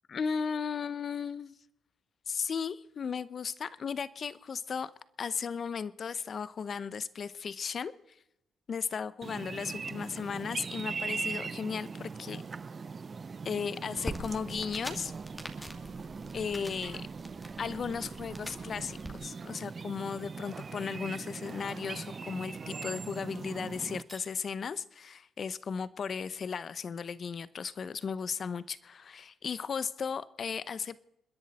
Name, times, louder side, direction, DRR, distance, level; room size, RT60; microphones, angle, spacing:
voice 1, 0.1-1.5 2.3-4.9 5.2-7.9 8.7-12.4 13.4-15.1 16.3-17.1 17.6-31.0, left 6 dB, 50° left, 17 dB, 0.8 m, -36 dB
sound 1, 9.2-24.0, right 5 dB, 35° right, 0.6 m, -40 dB
sound 2, 14.0-19.1, equal, 5° left, 2.5 m, -44 dB
sound 3, 23.9-24.4 27.3-27.4 27.8-29.2, right 2 dB, 20° right, 1.8 m, -58 dB
29.0 x 10.5 x 4.2 m, 0.83 s
cardioid pair, 90°, 0 cm